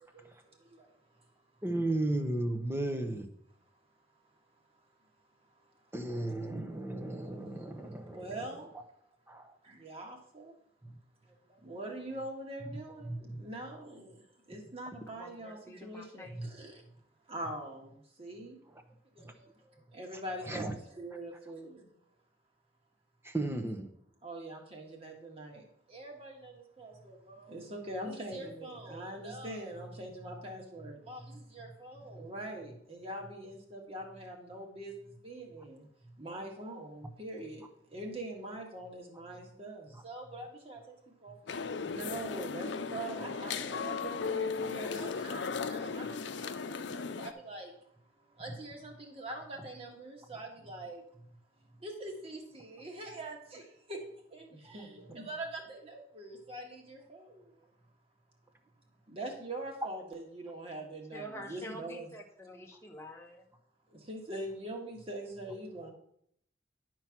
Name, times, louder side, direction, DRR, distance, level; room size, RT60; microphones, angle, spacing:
voice 1, 0.1-1.3 5.7-5.8 7.1-8.7 9.6-10.5 11.2-16.8 17.3-18.6 19.2-21.9 24.2-35.9 36.2-47.7 48.2-51.0 51.8-54.0 54.3-57.7 59.1-62.1 63.9-65.9, right 1 dB, 35° right, 0 dB, 1.8 m, -44 dB
voice 2, 1.6-3.3 5.9-8.3 9.3-9.6 13.1-13.4 16.3-16.5 19.2-19.3 20.4-20.7 23.2-23.9 54.7-54.8, right 1 dB, 15° right, 5 dB, 0.9 m, -34 dB
voice 3, 15.1-16.4 61.1-63.4, equal, 15° left, 0 dB, 0.9 m, -47 dB
sound 1, 41.5-47.3, left 5 dB, 90° left, 0.5 m, -36 dB
10.5 x 4.6 x 5.9 m, 0.71 s
head